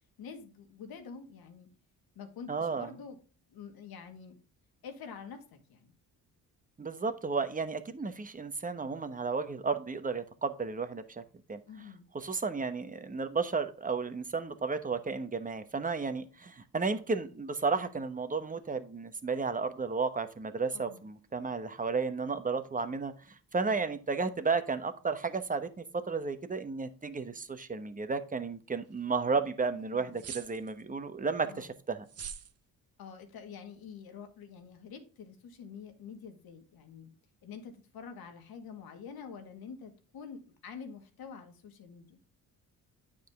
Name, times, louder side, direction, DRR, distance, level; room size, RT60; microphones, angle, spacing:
voice 1, 0.2-1.7 2.2-3.2 3.5-4.4 4.8-5.9 11.7-12.1 20.7-21.0 29.7-30.2 31.5-31.7 33.0-37.1 37.4-42.2, left 6 dB, 75° left, 5 dB, 2.0 m, -47 dB
voice 2, 2.5-2.9 6.8-11.2 11.5-11.6 12.1-32.0, right 4 dB, 20° right, 10 dB, 1.1 m, -33 dB
sound 1, 30.2-30.8 32.1-32.5, right 7 dB, 45° right, 0.9 m, -42 dB
9.3 x 5.1 x 3.6 m, 0.37 s
cardioid pair, 90°, 36 cm